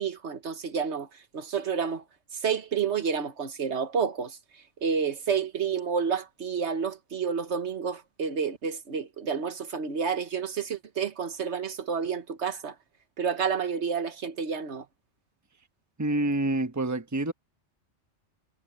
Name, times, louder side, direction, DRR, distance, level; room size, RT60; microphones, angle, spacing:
voice 1, 0.0-2.0 2.3-12.8 13.2-14.9, right 6 dB, 70° right, 1.4 m, -30 dB
voice 2, 16.0-17.3, right 2 dB, 15° right, 1.1 m, -27 dB
omnidirectional pair, 1.2 m